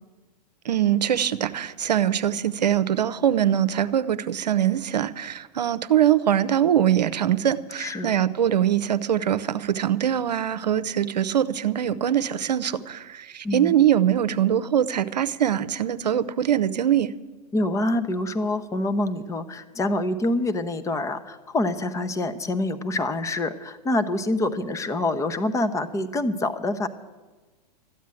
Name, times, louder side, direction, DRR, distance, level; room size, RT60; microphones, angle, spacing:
voice 1, 0.6-17.1, right 10 dB, 80° right, 14 dB, 0.7 m, -23 dB
voice 2, 7.8-8.1 13.4-13.8 17.5-26.9, left 2 dB, 15° left, 10 dB, 0.9 m, -26 dB
13.5 x 9.3 x 9.0 m, 1.3 s
hypercardioid pair, 100°, 21 cm